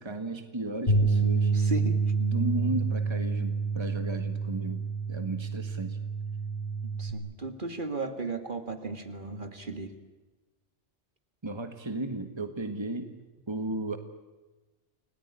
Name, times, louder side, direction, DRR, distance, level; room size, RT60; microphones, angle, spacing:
voice 1, 0.0-1.5 2.2-6.0 11.4-13.1 13.5-14.0, right 2 dB, 25° right, 7 dB, 1.7 m, -35 dB
sound 1, 0.9-7.1, right 4 dB, 60° left, 5.6 m, -28 dB
voice 2, 1.5-2.0 7.0-9.9, right 3 dB, 45° right, 8 dB, 2.2 m, -35 dB
29.5 x 19.5 x 9.9 m, 1.2 s
omnidirectional pair, 1.2 m